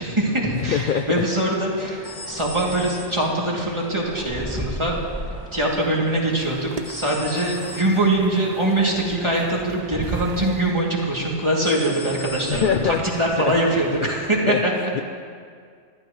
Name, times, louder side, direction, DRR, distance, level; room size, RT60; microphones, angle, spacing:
voice 1, 0.0-5.0 5.5-14.9, right 1 dB, 25° right, -4 dB, 2.7 m, -23 dB
voice 2, 0.5-1.2 12.5-13.2 13.5-13.6 14.0-14.1 14.5-14.6 14.9-15.0, left 7 dB, 60° left, 9 dB, 0.5 m, -23 dB
sound 1, 0.5-14.4, equal, 20° left, 2.1 m, -39 dB
sound 2, 2.0-3.6 6.8-8.1 11.6-13.0, left 1 dB, 85° left, 2.3 m, -38 dB
sound 3, 5.8-10.7, right 4 dB, 40° right, 0.7 m, -37 dB
28.0 x 13.0 x 3.1 m, 2.1 s
omnidirectional pair, 1.3 m